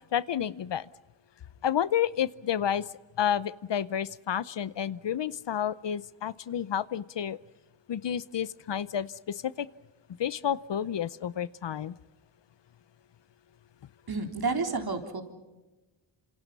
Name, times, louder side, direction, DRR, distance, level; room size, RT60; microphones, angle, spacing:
voice 1, 0.1-0.9 1.6-2.8 3.2-7.4 7.9-9.7 10.2-11.9, left 9 dB, 65° left, 18 dB, 0.8 m, -30 dB
voice 2, 14.1-15.2, right 3 dB, 50° right, 4 dB, 3.8 m, -30 dB
27.5 x 27.0 x 5.4 m, 1.1 s
cardioid pair, 70°, 47 cm